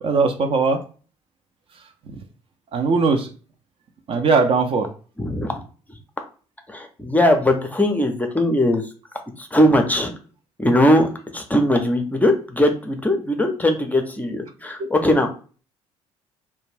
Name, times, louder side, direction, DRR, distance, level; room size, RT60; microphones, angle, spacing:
voice 1, 0.0-0.8 2.7-3.3 4.1-4.9, right 4 dB, 35° right, 5 dB, 0.5 m, -19 dB
voice 2, 5.2-5.6 6.7-8.8 9.4-10.1 10.6-11.1 11.3-15.3, left 1 dB, 10° left, 4 dB, 0.5 m, -19 dB
2.5 x 2.2 x 3.2 m, 0.38 s
figure-of-eight pair, 50°, 16 cm